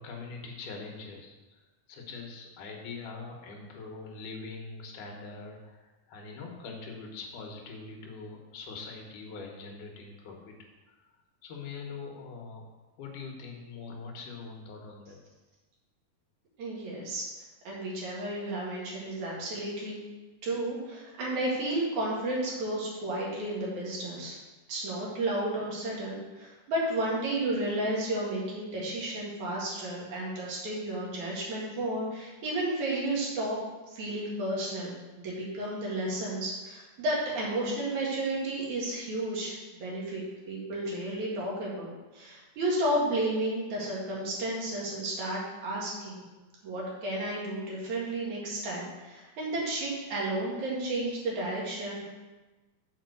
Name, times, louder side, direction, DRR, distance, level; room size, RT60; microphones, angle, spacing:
voice 1, 0.0-10.6 10.9-11.1 11.4-12.6 13.0-15.2, left 4 dB, 80° left, 1 dB, 2.7 m, -43 dB
voice 2, 16.6-17.3 17.6-20.0 20.4-24.4 24.7-33.6 33.9-34.9 35.2-46.2 46.6-52.1, right 1 dB, 70° right, -4 dB, 3.1 m, -32 dB
7.2 x 4.5 x 6.6 m, 1.2 s
omnidirectional pair, 3.6 m